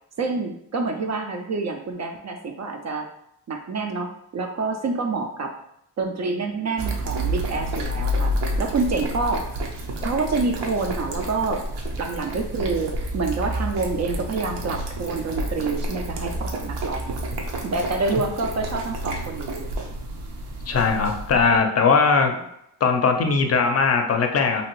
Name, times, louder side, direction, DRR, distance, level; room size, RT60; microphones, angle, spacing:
voice 1, 0.2-3.1 3.5-5.5 6.0-9.4 10.0-11.6 12.0-17.2 17.6-19.9, right 3 dB, 40° right, 4 dB, 0.4 m, -27 dB
sound 1, 6.8-21.6, right 1 dB, 70° right, 0.7 m, -29 dB
voice 2, 20.7-22.3 22.8-24.6, left 5 dB, 35° left, 5 dB, 0.5 m, -19 dB
2.8 x 2.5 x 3.0 m, 0.78 s
cardioid pair, 80°, 43 cm